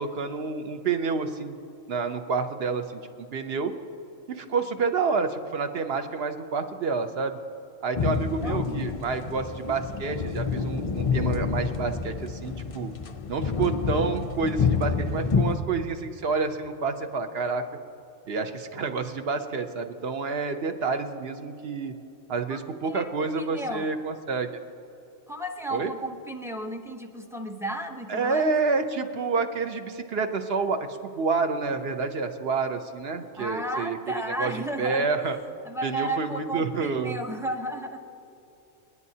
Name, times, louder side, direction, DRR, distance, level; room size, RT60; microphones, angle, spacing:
voice 1, 0.0-1.6 1.9-3.7 4.3-7.4 7.8-12.9 13.3-17.6 18.3-21.9 22.3-24.5 25.7-25.9 28.1-30.9 31.2-34.0 34.4-34.5 34.8-35.4 35.8-37.2, right 4 dB, 55° right, 7 dB, 0.9 m, -28 dB
sound 1, 8.0-15.6, left 5 dB, 65° left, 0.3 m, -28 dB
voice 2, 8.4-8.8 22.5-22.6 22.8-23.1 23.4-23.8 25.3-28.5 33.3-35.1 35.6-38.0, right 1 dB, 5° right, 4 dB, 0.6 m, -33 dB
28.5 x 9.6 x 2.8 m, 2.9 s
omnidirectional pair, 1.3 m